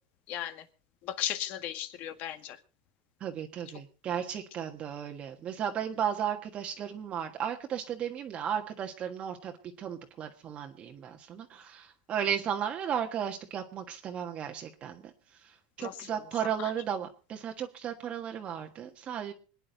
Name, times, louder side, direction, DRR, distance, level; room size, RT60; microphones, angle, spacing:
voice 1, 0.3-0.6 1.0-2.6 15.8-16.2 16.6-16.7, left 11 dB, 50° left, 10 dB, 1.8 m, -36 dB
voice 2, 3.2-15.1 15.8-19.3, right 9 dB, 35° right, 4 dB, 1.4 m, -35 dB
26.0 x 9.9 x 4.0 m, 0.37 s
supercardioid pair, 135°, 4 cm